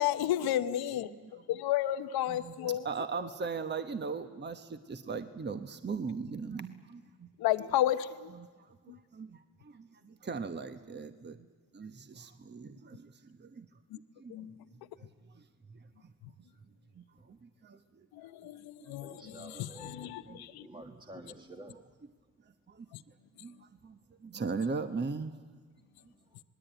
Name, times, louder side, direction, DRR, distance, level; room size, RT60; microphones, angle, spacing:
voice 1, 0.0-3.3 7.4-8.3 8.9-9.0 13.9-14.0 14.3-14.7 16.2-16.3 18.1-20.7 22.9-23.0, left 12 dB, 85° left, 1.0 m, -33 dB
voice 2, 2.3-7.3 8.9-11.5 11.7-13.7 14.2-14.5 15.3-15.4 15.7-15.8 17.0-17.8 18.8-18.9 20.3-20.4 22.7-22.9 23.4-23.5 23.8-25.3, right 5 dB, 30° right, 1.1 m, -39 dB
voice 3, 19.0-21.9 26.3-26.4, right 1 dB, 15° right, 1.4 m, -50 dB
26.5 x 20.0 x 9.1 m
cardioid pair, 75°, 36 cm